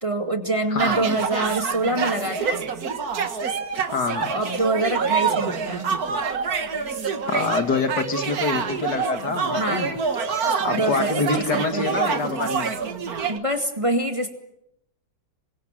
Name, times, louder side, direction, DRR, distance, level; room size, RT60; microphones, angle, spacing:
voice 1, 0.0-2.6 4.3-5.9 9.5-9.9 10.7-11.9 13.3-14.4, right 2 dB, 20° right, 6 dB, 2.1 m, -25 dB
voice 2, 0.7-1.0 3.9-4.3 7.3-9.9 10.6-12.7, left 4 dB, 75° left, 7 dB, 2.5 m, -26 dB
sound 1, 0.8-13.4, right 5 dB, 60° right, 2.0 m, -26 dB
26.5 x 23.0 x 7.5 m, 0.81 s
omnidirectional pair, 1.8 m